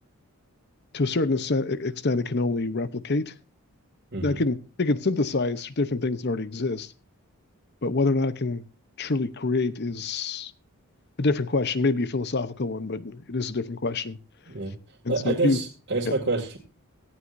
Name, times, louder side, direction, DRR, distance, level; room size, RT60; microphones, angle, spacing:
voice 1, 0.9-3.3 4.2-6.9 7.8-8.6 9.0-10.5 11.2-14.2 15.0-15.6 16.1-16.2, left 3 dB, 50° left, 0.8 m, -26 dB
voice 2, 15.1-16.6, right 3 dB, 50° right, 2.4 m, -27 dB
17.5 x 14.5 x 2.6 m
head